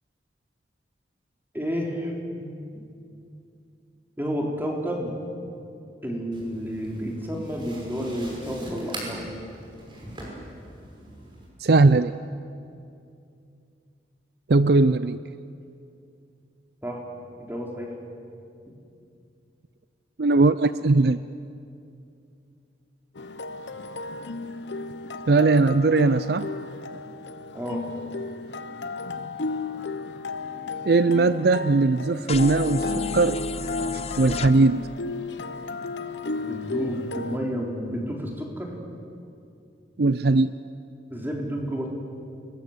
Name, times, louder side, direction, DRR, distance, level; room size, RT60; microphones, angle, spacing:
voice 1, 1.5-2.8 4.2-5.2 6.0-9.2 16.8-17.0 17.4-17.9 27.5-27.8 36.4-38.7 41.1-41.9, equal, 10° right, -1 dB, 3.9 m, -31 dB
sound 1, 6.3-11.5, right 1 dB, 25° right, 5.9 m, -42 dB
voice 2, 11.6-12.1 14.5-15.2 20.2-21.2 25.3-26.5 30.8-33.4 34.2-34.9 40.0-40.5, right 3 dB, 60° right, 14 dB, 0.5 m, -19 dB
sound 2, 23.2-37.4, left 3 dB, 80° left, 1.0 m, -34 dB
sound 3, 32.3-34.5, left 3 dB, 35° left, 0.7 m, -30 dB
28.5 x 21.0 x 8.1 m, 2.5 s
head